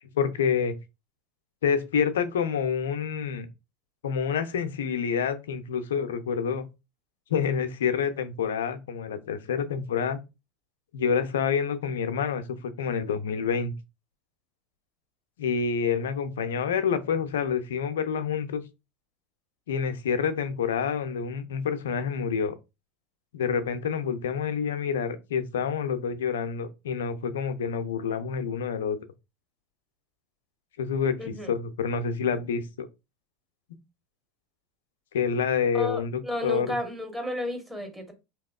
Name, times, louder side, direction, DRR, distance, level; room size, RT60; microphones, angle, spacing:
voice 1, 0.2-0.8 1.6-3.5 4.0-6.7 7.3-10.2 10.9-13.7 15.4-18.6 19.7-22.5 23.3-29.0 30.8-32.9 35.1-36.7, left 6 dB, 80° left, 0.5 m, -28 dB
voice 2, 31.2-31.5 35.7-38.1, left 1 dB, 10° right, 1.1 m, -32 dB
3.3 x 2.9 x 2.3 m
hypercardioid pair, 90°, 0 cm